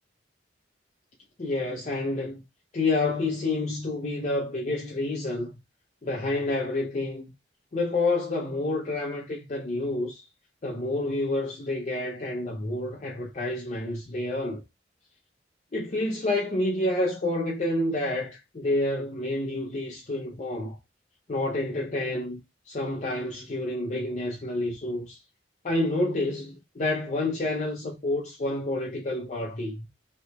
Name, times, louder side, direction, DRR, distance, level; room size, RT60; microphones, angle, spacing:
voice 1, 1.4-2.4 2.7-5.5 6.0-7.3 7.7-10.2 10.6-14.6 15.7-20.8 21.3-22.4 22.7-25.2 25.6-29.9, left 2 dB, 40° left, 0.6 m, -29 dB
3.2 x 2.9 x 2.8 m
head